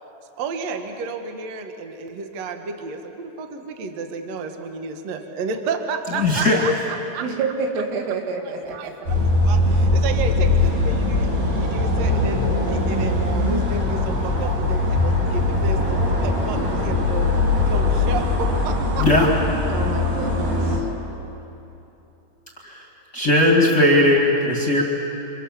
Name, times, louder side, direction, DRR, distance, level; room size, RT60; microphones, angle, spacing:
voice 1, 0.4-6.7 7.1-7.2 8.7-8.9 9.2-17.3 17.7-19.1, right 4 dB, 65° right, 5 dB, 1.6 m, -31 dB
voice 2, 6.2-6.6 19.0-19.3 22.6-22.9 23.1-24.8, left 1 dB, 30° left, -2 dB, 1.9 m, -17 dB
voice 3, 7.2-8.9 19.7-20.8, right 4 dB, 85° right, 2 dB, 5.1 m, -28 dB
sound 1, 9.1-20.8, left 2 dB, 40° right, 5.3 m, -21 dB
30.0 x 26.0 x 7.4 m, 3.0 s
omnidirectional pair, 5.9 m